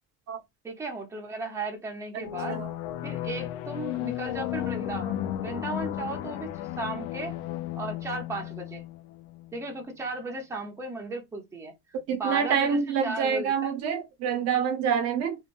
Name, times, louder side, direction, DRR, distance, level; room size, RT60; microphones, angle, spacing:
voice 1, 0.6-2.6 3.0-7.3 7.8-8.9 9.5-11.7 12.2-13.7, right 2 dB, 10° right, 0.8 m, -35 dB
voice 2, 2.1-2.7 12.1-15.4, right 7 dB, 55° right, 0.7 m, -27 dB
sound 1, 2.2-9.6, left 13 dB, 85° left, 0.5 m, -34 dB
2.9 x 2.2 x 2.6 m
cardioid pair, 140°, 30 cm